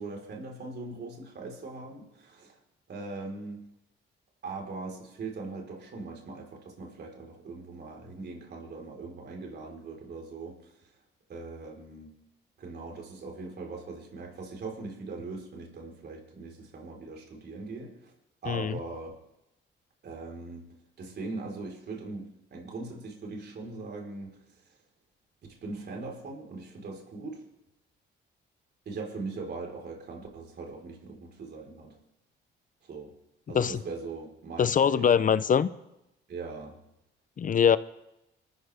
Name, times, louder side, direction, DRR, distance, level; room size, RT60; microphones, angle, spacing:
voice 1, 0.0-2.5 2.9-3.6 4.4-10.6 11.3-12.1 12.6-18.1 18.4-19.1 20.0-20.7 21.0-24.4 25.6-27.4 28.9-31.9 32.8-33.1 33.5-35.1 36.3-36.8, right 3 dB, 55° right, 4.4 m, -40 dB
voice 2, 18.5-18.8 33.5-33.8 34.6-35.7 37.4-37.8, left 7 dB, 40° left, 0.7 m, -23 dB
27.5 x 14.0 x 3.6 m
cardioid pair, 90°, 20 cm